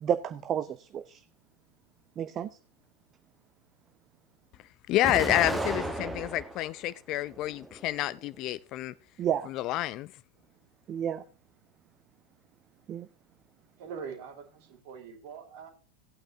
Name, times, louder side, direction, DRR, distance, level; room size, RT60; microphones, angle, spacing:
voice 1, 0.0-1.2 2.2-2.5 9.2-9.5 10.9-11.2 12.9-13.1, right 9 dB, 30° right, 0.5 m, -31 dB
voice 2, 4.9-8.9 9.5-10.1, left 15 dB, 40° left, 0.4 m, -29 dB
Explosion, 5.0-6.7 7.2-8.1, right 1 dB, 5° right, 1.1 m, -34 dB
voice 3, 13.8-15.7, right 6 dB, 45° right, 2.4 m, -43 dB
17.0 x 8.8 x 2.7 m
figure-of-eight pair, 90°, 0 cm